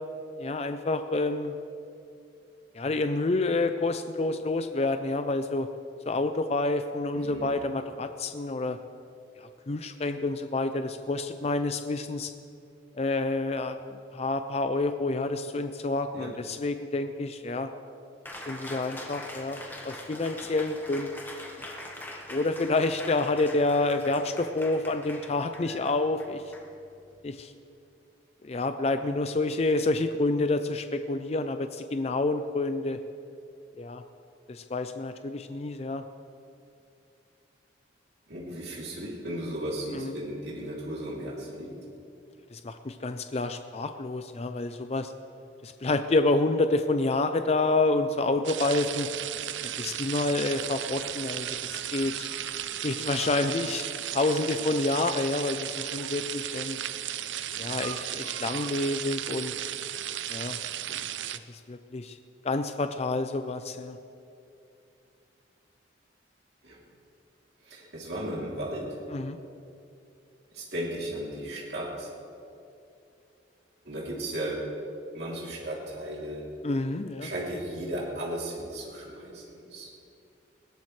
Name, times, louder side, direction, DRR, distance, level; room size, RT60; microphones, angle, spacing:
voice 1, 0.4-1.6 2.7-5.7 6.0-8.8 9.4-12.3 12.9-17.7 18.5-21.1 22.3-26.4 27.2-27.5 28.4-33.0 33.8-34.0 34.5-36.0 39.9-40.1 42.5-45.1 45.6-49.1 49.6-52.3 52.8-56.8 57.6-59.5 60.3-60.6 61.3-62.2 62.4-64.0 69.1-69.4 76.6-77.3, left 2 dB, 35° left, 8 dB, 0.5 m, -28 dB
voice 2, 7.1-7.5 16.1-16.3 38.3-41.7 57.4-57.8 66.6-66.8 67.6-69.0 70.5-72.1 73.8-74.6 75.1-76.4 77.2-80.1, right 1 dB, 65° right, -4 dB, 3.1 m, -35 dB
Cheering, 18.3-27.2, left 1 dB, 10° left, 1.4 m, -43 dB
sound 1, 48.4-61.4, right 11 dB, 85° right, 0.5 m, -35 dB
20.5 x 16.5 x 3.3 m, 2.6 s
head